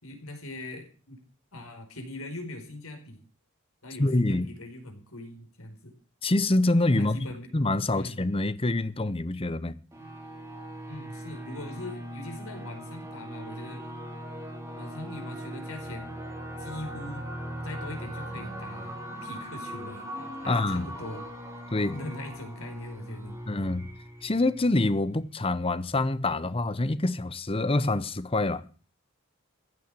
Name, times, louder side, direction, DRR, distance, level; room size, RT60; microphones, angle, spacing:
voice 1, 0.0-1.2 1.5-3.2 3.8-6.0 7.0-7.5 7.9-8.2 10.9-13.9 14.8-16.1 16.6-17.3 17.6-21.2 21.9-23.4, left 1 dB, 80° left, 5.0 m, -41 dB
voice 2, 4.0-4.5 6.2-7.2 7.5-9.7 20.5-20.9 21.7-22.0 23.5-23.9 24.2-28.6, left 2 dB, 25° left, 0.8 m, -26 dB
sound 1, 9.9-25.2, right 1 dB, 15° right, 3.8 m, -40 dB
15.5 x 9.1 x 7.5 m
head